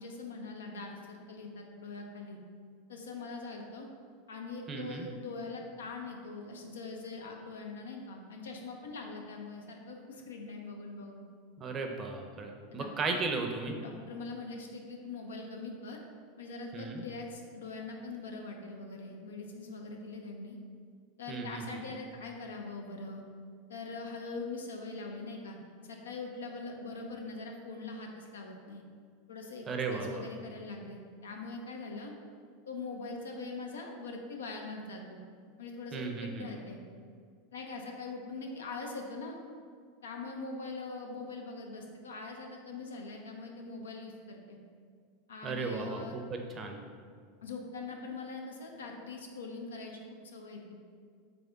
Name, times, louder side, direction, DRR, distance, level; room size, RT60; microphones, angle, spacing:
voice 1, 0.0-2.4 2.9-3.9 4.3-11.2 12.7-13.2 13.8-16.0 16.4-20.6 21.2-23.2 23.7-25.6 25.8-28.8 29.3-32.1 32.6-35.2 35.6-36.8 37.5-39.4 40.0-44.6 45.3-46.2 47.4-50.8, left 3 dB, 80° left, 2 dB, 0.5 m, -42 dB
voice 2, 4.7-5.1 11.6-13.7 16.7-17.0 21.3-21.8 29.7-30.2 35.9-36.5 45.4-46.8, right 4 dB, 30° right, 3 dB, 0.6 m, -35 dB
3.4 x 3.4 x 3.8 m, 2.1 s
hypercardioid pair, 90°, 0 cm